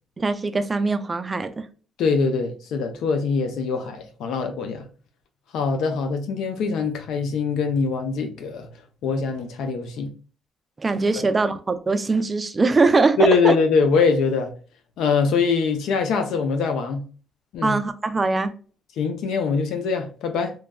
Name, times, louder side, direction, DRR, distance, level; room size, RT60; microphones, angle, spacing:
voice 1, 0.2-1.7 10.8-13.2 13.4-13.5 17.6-18.5, right 3 dB, 30° right, 0.3 m, -22 dB
voice 2, 2.0-4.9 5.5-8.7 9.0-10.1 13.2-14.5 15.0-17.0 17.5-17.8 19.0-20.5, left 4 dB, 85° left, 0.5 m, -23 dB
2.9 x 2.2 x 2.2 m
cardioid pair, 90°, 0 cm